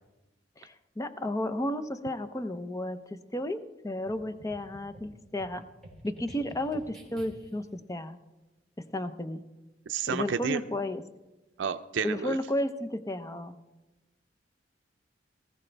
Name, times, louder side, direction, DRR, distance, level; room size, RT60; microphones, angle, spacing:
voice 1, 0.6-5.6 6.0-8.2 8.9-9.4 10.1-11.0 12.0-13.6, left 1 dB, 20° left, 10 dB, 0.7 m, -33 dB
sound 1, 4.1-7.7, right 1 dB, 5° left, 2.8 m, -50 dB
voice 2, 9.9-10.6 11.6-12.4, right 6 dB, 90° right, 9 dB, 0.4 m, -31 dB
19.0 x 14.5 x 3.4 m, 1.1 s
head